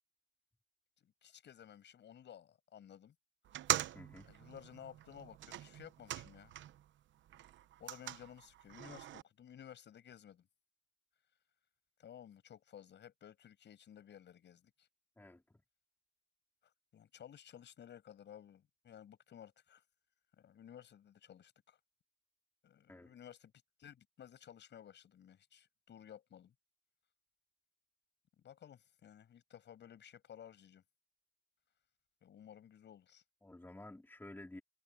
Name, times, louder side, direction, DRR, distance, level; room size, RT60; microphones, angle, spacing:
voice 1, 1.0-3.1 4.3-6.5 7.8-10.5 12.0-14.9 16.6-19.8 20.4-21.8 22.6-23.5 23.8-26.5 28.4-30.8 32.2-33.2, left 9 dB, 65° left, 6.5 m, -56 dB
sound 1, 3.4-6.9 7.2-9.2, right 12 dB, 70° right, 0.9 m, -42 dB
voice 2, 3.9-4.3 15.2-15.6 22.9-23.1 33.4-34.6, left 2 dB, 10° left, 3.2 m, -52 dB
cardioid pair, 90°, 20 cm